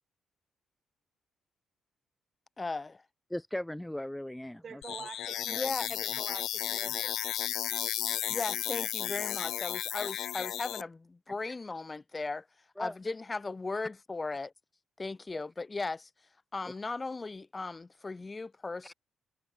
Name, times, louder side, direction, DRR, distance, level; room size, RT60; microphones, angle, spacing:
voice 1, 2.6-3.0 5.5-6.0 8.3-12.5 12.8-14.5 15.0-16.1 16.5-18.9, left 3 dB, 25° left, 1.1 m, -37 dB
voice 2, 3.3-5.0 12.8-13.0 15.3-15.4 18.8-18.9, left 1 dB, 5° left, 1.4 m, -38 dB
voice 3, 4.6-5.7 6.0-7.3, right 6 dB, 45° right, 3.7 m, -46 dB
sound 1, 4.8-10.8, left 12 dB, 80° left, 1.9 m, -34 dB
cardioid pair, 90°, 0 cm